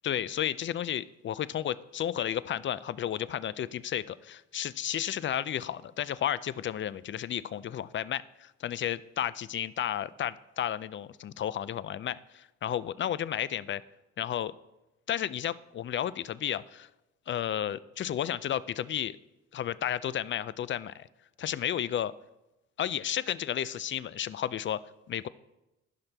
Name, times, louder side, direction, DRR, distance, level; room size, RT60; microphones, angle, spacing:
voice 1, 0.0-13.8 14.2-14.5 15.1-16.9 17.3-19.2 19.5-21.1 21.4-22.1 22.8-24.8 25.1-25.3, left 10 dB, 40° left, 18 dB, 0.4 m, -32 dB
14.5 x 5.7 x 3.4 m, 0.97 s
cardioid pair, 90°, 30 cm